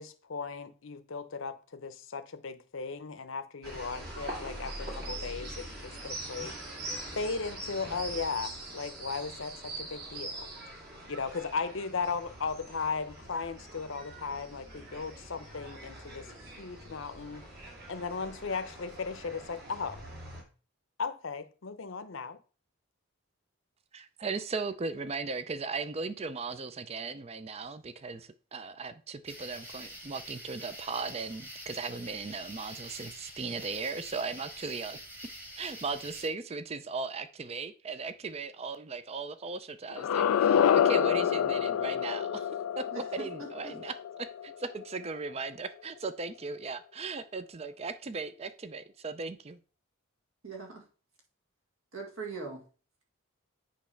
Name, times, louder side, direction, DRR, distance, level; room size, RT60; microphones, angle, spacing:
voice 1, 0.0-6.6 7.2-10.5 11.1-17.5 17.9-20.0 21.0-22.4, left 5 dB, 60° left, 0.7 m, -36 dB
sound 1, 3.6-20.4, right 1 dB, 50° right, 2.1 m, -43 dB
voice 2, 23.9-35.0 35.6-42.5 42.8-49.6, right 4 dB, 30° right, 0.4 m, -37 dB
sound 2, 29.3-36.3, equal, 10° right, 1.2 m, -46 dB
sound 3, 39.9-44.8, left 8 dB, 80° left, 0.3 m, -27 dB
voice 3, 42.9-43.8 50.4-50.8 51.9-52.6, right 4 dB, 70° right, 2.2 m, -41 dB
8.5 x 3.1 x 5.7 m
head